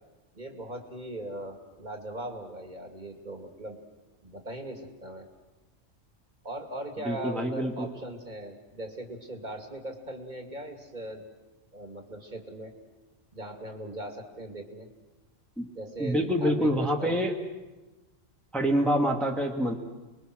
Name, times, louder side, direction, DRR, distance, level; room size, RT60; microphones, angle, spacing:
voice 1, 0.3-3.8 4.2-5.3 6.4-11.2 11.7-12.7 13.3-14.9 15.7-17.2, right 1 dB, 35° right, 3 dB, 2.7 m, -39 dB
voice 2, 7.0-7.9 15.6-15.7 16.0-17.4 18.5-19.8, equal, ahead, 1 dB, 1.7 m, -26 dB
30.0 x 21.5 x 6.3 m, 1.1 s
omnidirectional pair, 1.3 m